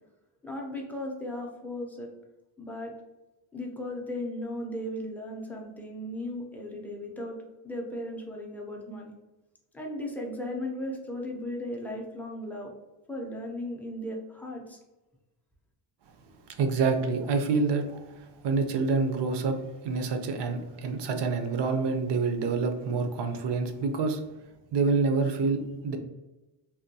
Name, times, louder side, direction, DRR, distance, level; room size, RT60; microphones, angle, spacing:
voice 1, 0.4-2.1 2.6-2.9 3.5-7.4 7.6-9.1 9.7-12.7 13.1-14.8, left 1 dB, 5° left, -1 dB, 0.4 m, -36 dB
voice 2, 16.6-19.6 19.8-24.2 24.7-26.0, right 4 dB, 55° right, 6 dB, 0.5 m, -27 dB
3.4 x 2.2 x 2.6 m, 1.1 s
cardioid pair, 135°, 49 cm